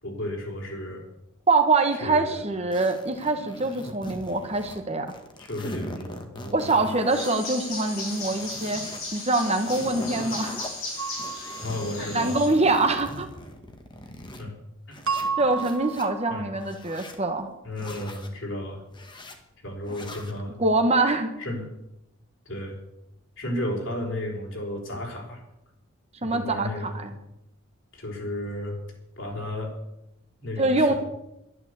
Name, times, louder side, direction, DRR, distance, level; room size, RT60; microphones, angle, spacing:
voice 1, 0.0-1.0 2.0-2.4 5.4-6.8 11.6-12.4 14.4-14.5 14.9-15.0 16.3-16.5 17.6-18.8 19.6-20.6 21.4-21.7 22.5-22.8 23.4-25.4 26.2-27.0 27.9-28.8 29.2-29.7 30.4-31.0, left 1 dB, 60° left, -1 dB, 4.4 m, -33 dB
voice 2, 1.5-5.1 6.5-8.8 9.1-10.6 12.0-13.3 15.4-17.5 20.6-21.3 26.2-27.1 30.6-30.9, right 2 dB, 30° right, 6 dB, 1.3 m, -24 dB
sound 1, 2.7-4.8 5.1-7.4 7.8-9.0 9.4-10.7 11.2-14.4 14.9-16.1 16.6-17.2 17.7-18.3 18.9-19.4 19.9-20.4, left 1 dB, 20° left, 1.6 m, -41 dB
sound 2, 7.1-12.5, left 3 dB, 85° left, 7.1 m, -36 dB
A mug tapping a bowl, 11.0-12.1 15.1-16.4, right 5 dB, 80° right, 1.8 m, -32 dB
11.5 x 11.0 x 8.2 m, 0.87 s
head